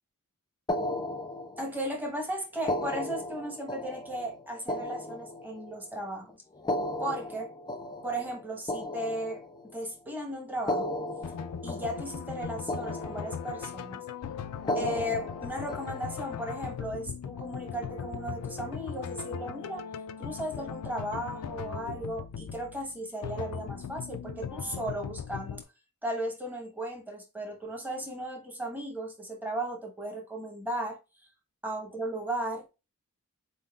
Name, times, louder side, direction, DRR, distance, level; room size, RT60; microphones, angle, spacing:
sound 1, 0.7-1.9 2.6-5.9 6.5-9.8 10.5-12.4 12.7-13.7 14.6-16.4, left 1 dB, 20° left, 0.4 m, -35 dB
voice 1, 1.6-6.4 7.0-7.5 8.0-10.9 11.6-14.0 14.7-19.8 20.2-25.6 26.0-31.0 31.6-32.6, right 1 dB, 10° right, 1.1 m, -36 dB
sound 2, 11.2-25.6, left 7 dB, 85° left, 0.4 m, -39 dB
4.3 x 3.7 x 2.3 m
head